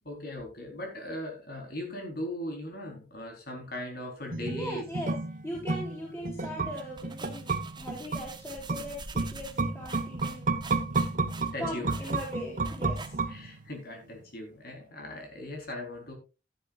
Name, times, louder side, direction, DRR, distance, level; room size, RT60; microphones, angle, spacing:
voice 1, 0.0-4.8 11.5-11.9 13.3-16.1, left 1 dB, 60° left, 2 dB, 4.1 m, -39 dB
sound 1, 4.3-13.8 14.1-14.2, right 3 dB, 50° right, 1.1 m, -32 dB
voice 2, 4.5-5.1 5.4-10.6 11.6-13.4, equal, 15° left, -4 dB, 4.3 m, -40 dB
sound 2, 6.6-13.5, right 4 dB, 25° right, 1.2 m, -46 dB
15.0 x 10.5 x 2.5 m, 0.28 s
head